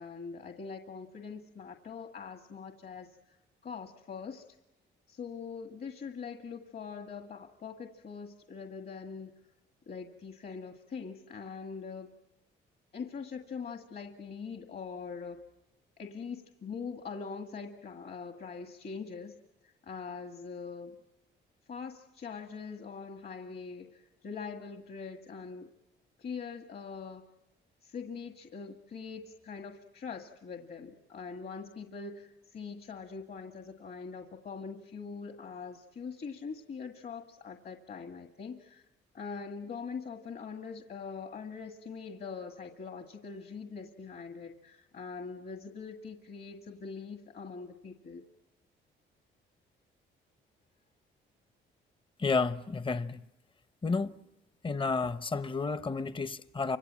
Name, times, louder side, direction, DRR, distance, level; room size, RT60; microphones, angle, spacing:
voice 1, 0.0-3.1 3.6-4.5 5.1-9.3 9.9-12.1 12.9-15.5 16.0-19.4 19.6-21.0 21.7-25.7 26.2-27.2 27.8-38.8 39.1-48.2, left 5 dB, 50° left, 1.8 m, -43 dB
voice 2, 52.2-53.3 53.8-54.2 54.6-56.8, left 4 dB, 25° left, 1.0 m, -31 dB
29.5 x 26.0 x 7.6 m
cardioid pair, 90°, 20 cm